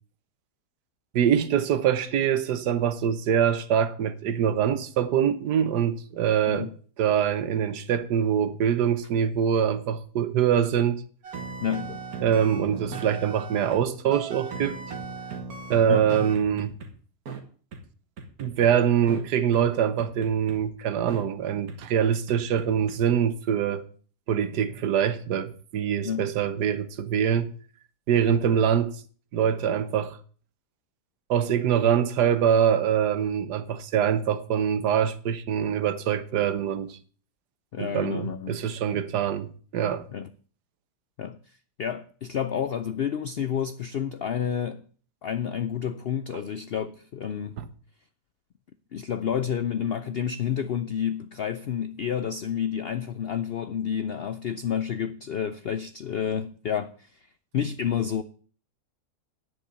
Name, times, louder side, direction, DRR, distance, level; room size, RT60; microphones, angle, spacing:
voice 1, 1.1-6.7 7.0-11.0 12.2-14.8 15.7-16.7 18.4-23.8 24.3-27.5 28.1-29.0 29.3-30.2 31.3-37.0 37.8-40.0 47.6-47.7, right 8 dB, 90° right, 1.5 m, -24 dB
sound 1, 11.2-13.8 14.1-16.9 17.3-17.4 17.7-17.8 18.2-18.7 19.1-19.2 19.5-19.6 20.0-20.6 21.1-21.2 21.7-21.8 22.3-23.0, right 4 dB, 65° right, 2.0 m, -37 dB
voice 2, 11.6-12.0 15.9-16.1 26.0-26.3 37.7-38.6 38.9-39.0 40.1-40.3 41.2-41.4 41.8-44.8 45.2-47.6 48.9-57.3 57.5-58.2, left 8 dB, 85° left, 0.5 m, -30 dB
10.0 x 5.3 x 8.2 m
omnidirectional pair, 1.7 m